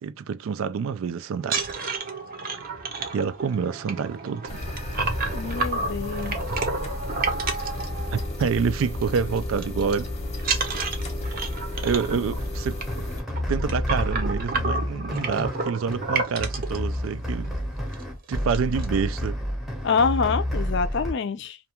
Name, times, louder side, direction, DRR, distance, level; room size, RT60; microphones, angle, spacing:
voice 1, 0.0-1.7 3.1-4.6 6.1-6.3 8.1-10.1 11.2-11.3 11.8-12.8 13.5-17.5 18.3-19.4, right 6 dB, 85° right, 0.3 m, -27 dB
sound 1, 1.4-8.5 8.8-9.1 9.4-9.9 10.4-16.8 17.4-17.5 17.9-18.0 18.3-18.9, right 3 dB, 45° right, 0.7 m, -30 dB
sound 2, 4.5-13.2, left 1 dB, 35° left, 0.7 m, -32 dB
voice 2, 5.3-6.4 12.1-12.2 19.8-21.6, left 5 dB, 60° left, 0.4 m, -26 dB
sound 3, 12.4-21.1, left 1 dB, ahead, 0.7 m, -30 dB
2.5 x 2.3 x 2.8 m
head